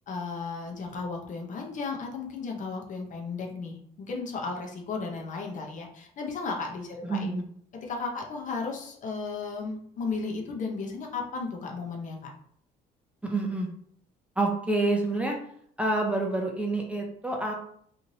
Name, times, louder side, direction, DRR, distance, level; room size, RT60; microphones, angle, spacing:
voice 1, 0.1-7.4 7.8-12.3, left 4 dB, 50° left, 1 dB, 0.7 m, -34 dB
voice 2, 7.0-7.4 13.2-13.7 14.4-15.4 15.8-17.5, right 2 dB, 5° right, 0 dB, 0.5 m, -27 dB
3.0 x 2.6 x 2.7 m, 0.64 s
cardioid pair, 110°, 17 cm